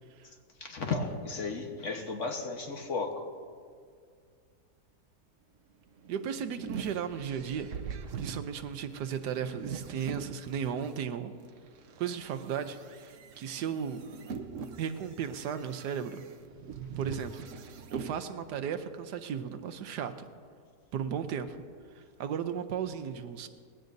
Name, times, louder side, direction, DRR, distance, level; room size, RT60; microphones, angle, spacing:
voice 1, 0.6-3.3, left 4 dB, 50° left, 2 dB, 1.4 m, -34 dB
sound 1, 5.9-10.9 11.5-18.1, right 6 dB, 60° right, 0.9 m, -43 dB
voice 2, 6.1-7.7 8.1-11.3 12.0-14.0 14.8-16.2 17.0-17.5 17.9-20.1 20.9-21.6 21.9-23.5, right 8 dB, 80° right, 9 dB, 1.3 m, -35 dB
20.0 x 17.0 x 2.7 m, 2.1 s
omnidirectional pair, 1.8 m